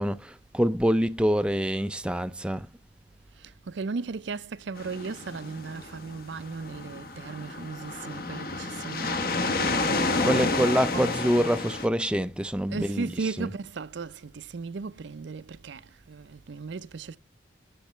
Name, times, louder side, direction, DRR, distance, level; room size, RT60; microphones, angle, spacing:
voice 1, 0.0-2.7 10.2-13.5, equal, 5° right, 0.3 m, -26 dB
voice 2, 3.4-11.2 12.7-17.2, right 4 dB, 75° right, 0.5 m, -37 dB
sound 1, 4.8-11.9, left 3 dB, 50° left, 0.9 m, -30 dB
10.0 x 5.4 x 3.1 m
head